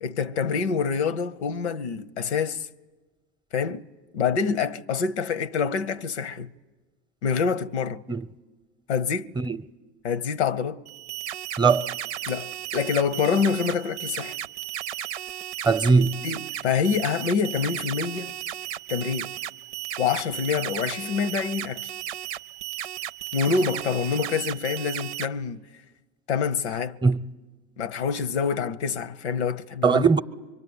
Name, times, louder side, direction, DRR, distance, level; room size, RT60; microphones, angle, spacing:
voice 1, 0.0-2.7 3.5-3.9 4.1-6.5 7.2-8.0 8.9-9.4 10.0-10.8 12.3-14.4 16.2-18.3 18.9-19.3 20.0-21.9 23.3-25.6 26.3-27.0 27.8-30.0, left 6 dB, 90° left, 0.9 m, -26 dB
sound 1, 10.9-25.3, right 12 dB, 90° right, 0.7 m, -35 dB
voice 2, 15.7-16.2 27.0-27.2 29.8-30.2, right 4 dB, 15° right, 0.8 m, -19 dB
24.5 x 24.0 x 9.5 m
hypercardioid pair, 90°, 33 cm